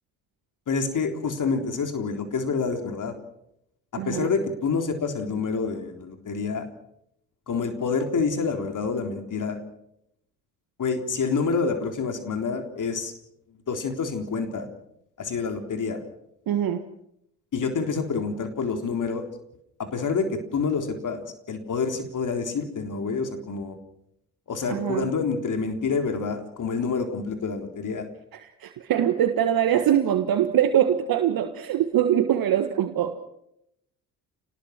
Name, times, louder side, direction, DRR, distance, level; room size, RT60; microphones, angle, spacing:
voice 1, 0.7-3.1 4.0-6.7 7.5-9.6 10.8-13.1 13.7-14.7 15.2-16.0 17.5-19.3 19.8-23.8 24.5-28.1, left 5 dB, 45° left, 6 dB, 3.8 m, -27 dB
voice 2, 4.0-4.3 16.5-16.8 24.7-25.1 28.3-33.2, right 10 dB, 55° right, 8 dB, 1.7 m, -23 dB
28.5 x 19.5 x 6.1 m, 0.77 s
hypercardioid pair, 50°, 42 cm